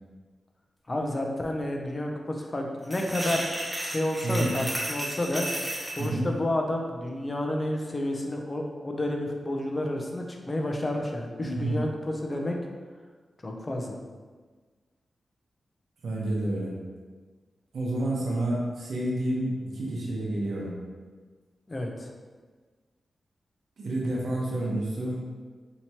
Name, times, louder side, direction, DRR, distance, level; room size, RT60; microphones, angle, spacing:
voice 1, 0.9-3.4 3.8-5.4 6.0-12.6 13.4-14.0 21.7-22.1, left 1 dB, 25° left, 1 dB, 0.5 m, -30 dB
sound 1, 2.8-6.1, right 1 dB, 10° right, 0.7 m, -33 dB
voice 2, 4.2-4.6 6.0-6.3 11.4-11.8 16.0-16.7 17.7-20.8 23.8-25.2, right 1 dB, 85° right, -4 dB, 0.8 m, -29 dB
4.6 x 2.8 x 2.8 m, 1.4 s
wide cardioid pair, 145°, 0 cm